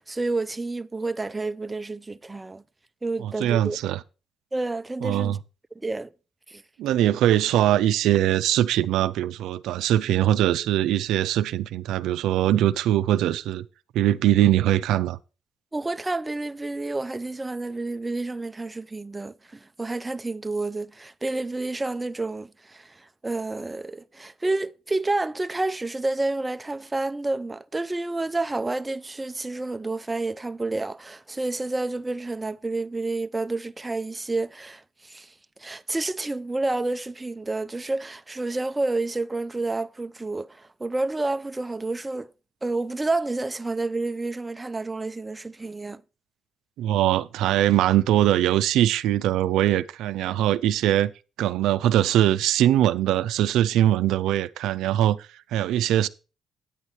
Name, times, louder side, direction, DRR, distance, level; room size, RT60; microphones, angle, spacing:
voice 1, 0.0-2.6 3.0-3.8 4.5-5.4 5.8-6.1 6.5-6.6 15.7-35.3 35.6-42.3 42.6-46.0, right 2 dB, 15° right, 0.5 m, -29 dB
voice 2, 3.2-4.0 5.0-5.4 6.8-13.6 13.9-15.2 46.8-51.1 51.4-56.1, right 12 dB, 90° right, 0.4 m, -22 dB
9.0 x 8.1 x 4.4 m
cardioid pair, 90°, 0 cm